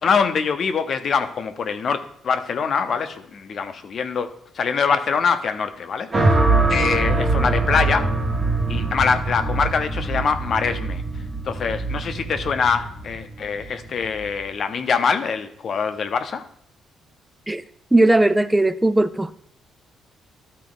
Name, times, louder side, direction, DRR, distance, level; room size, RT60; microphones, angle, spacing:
voice 1, 0.0-4.3 4.6-6.3 6.7-8.0 8.7-11.0 11.5-16.4, left 6 dB, 55° left, 0.8 m, -23 dB
sound 1, 6.1-14.4, right 2 dB, 35° right, 1.4 m, -23 dB
voice 2, 17.9-19.3, right 2 dB, 10° right, 0.3 m, -17 dB
12.0 x 4.1 x 4.0 m
cardioid pair, 90°, 0 cm